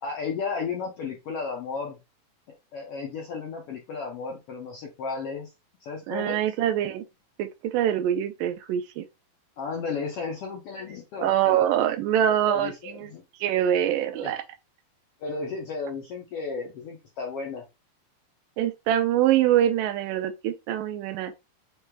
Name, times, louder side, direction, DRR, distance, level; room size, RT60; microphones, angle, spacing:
voice 1, 0.0-2.0 2.7-5.5 5.8-6.4 9.6-11.6 12.3-13.2 14.1-14.3 15.2-17.6, left 4 dB, 70° left, 1.4 m, -34 dB
voice 2, 6.1-7.0 7.4-9.1 11.2-13.1 13.4-14.4 18.6-21.3, right 11 dB, 90° right, 2.3 m, -24 dB
6.3 x 3.3 x 2.3 m
omnidirectional pair, 3.8 m